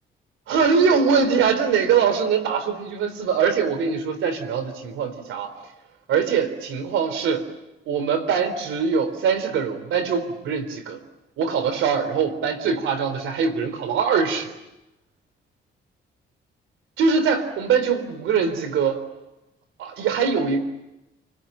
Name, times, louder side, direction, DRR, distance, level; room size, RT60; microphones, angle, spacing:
voice 1, 0.5-5.5 6.1-7.5 7.9-11.0 11.4-14.5 17.0-19.0 19.8-20.6, right 6 dB, 85° right, 11 dB, 3.8 m, -22 dB
29.5 x 20.5 x 9.0 m, 0.97 s
cardioid pair, 90°, 20 cm